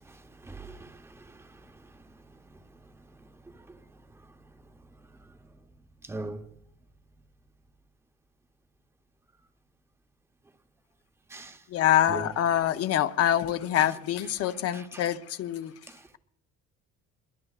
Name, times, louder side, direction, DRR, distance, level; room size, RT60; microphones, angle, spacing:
voice 1, 0.0-1.8 2.5-2.6 3.4-3.8 6.0-6.5 11.3-11.6 12.1-12.3 14.4-15.0 15.9-16.0, right 2 dB, 10° right, 0.8 m, -42 dB
voice 2, 11.7-15.7, left 11 dB, 55° left, 0.7 m, -25 dB
27.0 x 22.0 x 2.4 m
cardioid pair, 155°, 29 cm